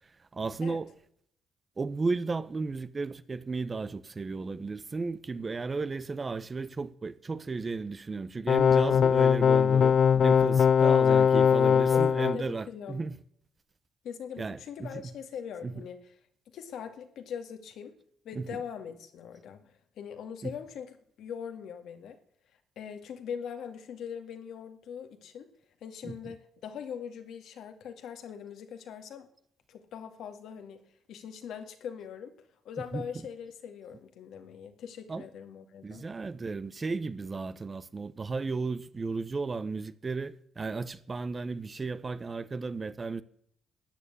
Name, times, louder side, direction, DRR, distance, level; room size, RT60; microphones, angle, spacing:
voice 1, 0.3-0.9 1.8-13.2 14.4-15.1 15.6-15.8 18.3-18.6 20.4-20.6 26.0-26.3 32.8-33.2 35.1-35.3 35.8-43.2, right 4 dB, 30° right, 0.9 m, -34 dB
sound 1, 8.5-12.4, left 7 dB, 55° left, 0.6 m, -21 dB
voice 2, 11.7-12.1 12.3-13.0 14.0-16.1 16.5-17.9 18.2-22.2 22.8-25.5 25.8-29.3 29.7-30.8 31.1-32.3 32.6-36.1, left 7 dB, 75° left, 2.1 m, -41 dB
13.5 x 8.9 x 8.6 m
cardioid pair, 90°, 0 cm